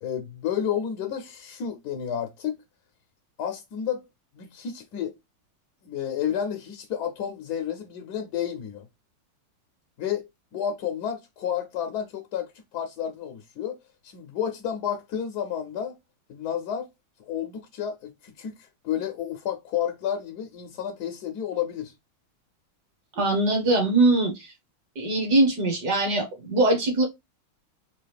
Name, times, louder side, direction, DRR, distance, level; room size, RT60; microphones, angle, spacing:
voice 1, 0.0-2.6 3.4-4.0 4.3-5.1 5.8-8.9 10.0-10.3 10.5-13.8 14.0-16.0 16.3-16.9 17.3-21.9, left 9 dB, 70° left, 1.0 m, -31 dB
voice 2, 23.2-24.5 25.0-27.0, right 2 dB, 55° right, 1.6 m, -22 dB
4.6 x 2.4 x 3.4 m
omnidirectional pair, 2.4 m